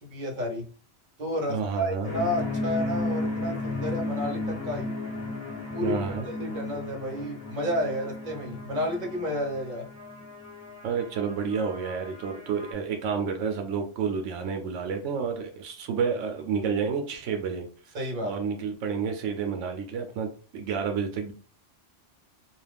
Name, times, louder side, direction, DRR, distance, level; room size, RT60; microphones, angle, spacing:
voice 1, 0.0-0.7 1.2-4.9 5.7-6.0 6.2-9.9 17.9-18.3, equal, 45° right, 0 dB, 1.0 m, -31 dB
voice 2, 1.5-2.1 5.8-6.3 10.8-17.6 18.2-20.3 20.5-21.3, right 6 dB, 85° right, 4 dB, 0.9 m, -30 dB
sound 1, 2.0-12.7, left 2 dB, 15° left, 0.7 m, -34 dB
2.5 x 2.3 x 3.4 m, 0.39 s
omnidirectional pair, 1.2 m